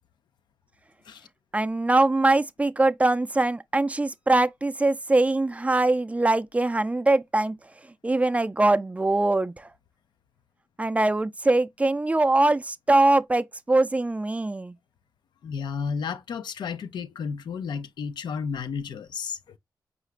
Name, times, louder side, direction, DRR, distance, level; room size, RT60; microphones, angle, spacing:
voice 1, 1.5-7.6 8.0-9.7 10.8-14.7, right 2 dB, 20° right, 0.4 m, -22 dB
voice 2, 15.4-19.4, left 6 dB, 75° left, 0.5 m, -32 dB
4.7 x 2.4 x 3.2 m
cardioid pair, 60°, 8 cm